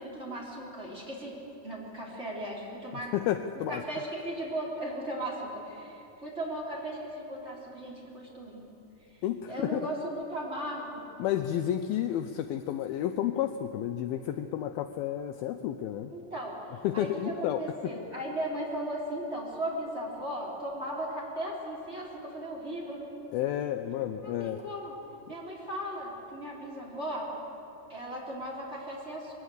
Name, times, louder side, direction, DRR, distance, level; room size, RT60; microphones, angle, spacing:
voice 1, 0.0-1.4 1.6-3.1 3.7-8.7 9.0-11.1 16.1-23.1 24.2-24.9 25.3-27.3 27.9-29.3, right 1 dB, 15° right, -3 dB, 3.8 m, -37 dB
voice 2, 3.1-3.8 9.2-9.9 11.2-16.1 16.8-17.9 23.3-24.6, left 11 dB, 80° left, 8 dB, 2.3 m, -31 dB
22.0 x 18.0 x 8.0 m, 3.0 s
omnidirectional pair, 4.7 m